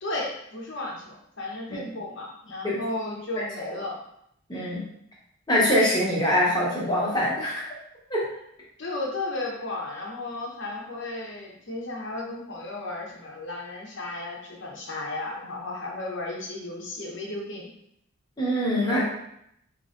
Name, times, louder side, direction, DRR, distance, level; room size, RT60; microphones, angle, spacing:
voice 1, 0.0-4.0 4.5-4.8 8.8-17.7, left 2 dB, 60° left, -2 dB, 1.0 m, -34 dB
voice 2, 4.5-4.8 5.5-7.7 8.1-8.2 18.4-19.0, equal, 20° left, -6 dB, 1.1 m, -23 dB
4.8 x 3.2 x 2.5 m, 0.74 s
head